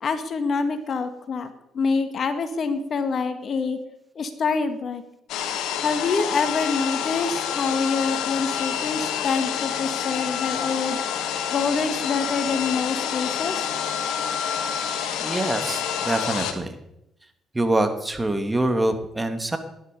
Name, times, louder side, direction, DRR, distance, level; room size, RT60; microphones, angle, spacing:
voice 1, 0.0-3.8 4.2-5.0 5.8-11.0 11.5-13.7, left 4 dB, 55° left, 9 dB, 1.8 m, -26 dB
sound 1, 5.3-16.5, left 8 dB, 75° left, 1.7 m, -28 dB
voice 2, 15.2-16.8 17.5-19.6, right 1 dB, 20° right, 7 dB, 2.5 m, -25 dB
18.5 x 11.0 x 5.4 m, 0.82 s
supercardioid pair, 60°, 0 cm